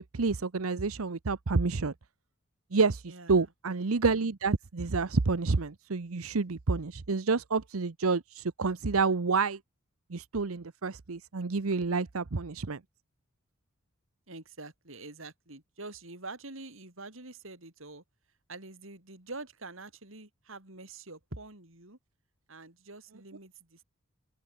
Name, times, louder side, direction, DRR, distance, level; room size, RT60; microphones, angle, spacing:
voice 1, 0.0-1.9 2.7-9.6 10.1-12.8, right 4 dB, 90° right, 0.9 m, -29 dB
voice 2, 3.1-3.4 14.3-18.0 18.5-22.0 22.5-23.8, right 2 dB, 65° right, 4.4 m, -46 dB
open air
head